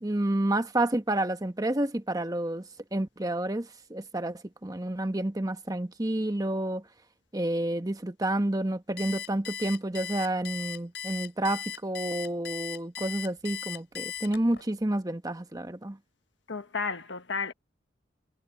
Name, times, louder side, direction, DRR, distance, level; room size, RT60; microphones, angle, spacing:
voice 1, 0.0-6.8 7.3-16.0, right 1 dB, 20° right, 1.2 m, -30 dB
Alarm, 9.0-14.6, left 8 dB, 65° left, 6.7 m, -38 dB
voice 2, 16.5-17.5, left 5 dB, 90° left, 1.4 m, -32 dB
head